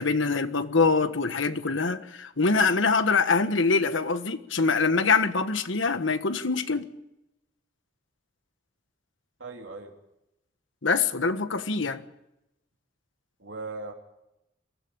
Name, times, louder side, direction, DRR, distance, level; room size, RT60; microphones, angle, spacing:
voice 1, 0.0-6.9 10.8-12.0, left 4 dB, 90° left, 1.5 m, -24 dB
voice 2, 9.4-9.9 13.4-13.9, right 3 dB, 90° right, 3.4 m, -38 dB
23.5 x 15.0 x 8.8 m
head